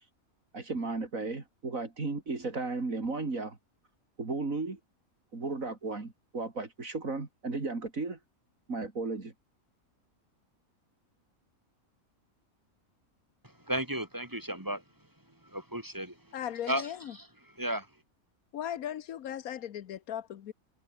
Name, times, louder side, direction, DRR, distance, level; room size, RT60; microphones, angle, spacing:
voice 1, 0.5-3.6 4.2-4.8 5.3-8.2 8.7-9.3, right 3 dB, 70° right, 3.7 m, -34 dB
voice 2, 13.7-14.8 15.5-16.2 16.7-17.3 17.6-17.9, right 1 dB, 15° right, 3.4 m, -34 dB
voice 3, 16.3-17.1 18.5-20.5, left 10 dB, 90° left, 1.4 m, -37 dB
omnidirectional pair, 1.5 m